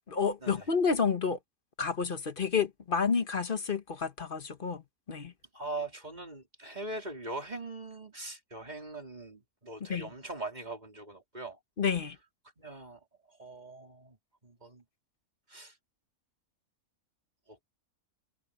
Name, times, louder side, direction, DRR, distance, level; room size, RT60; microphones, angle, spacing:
voice 1, 0.1-1.4 1.8-4.8 5.1-5.3 9.9-10.1 11.8-12.1, left 5 dB, 40° left, 1.2 m, -30 dB
voice 2, 5.5-11.6 12.6-13.0 13.3-14.2 14.4-14.8 15.5-15.7 17.5-17.6, right 2 dB, 30° right, 3.4 m, -41 dB
omnidirectional pair, 1.6 m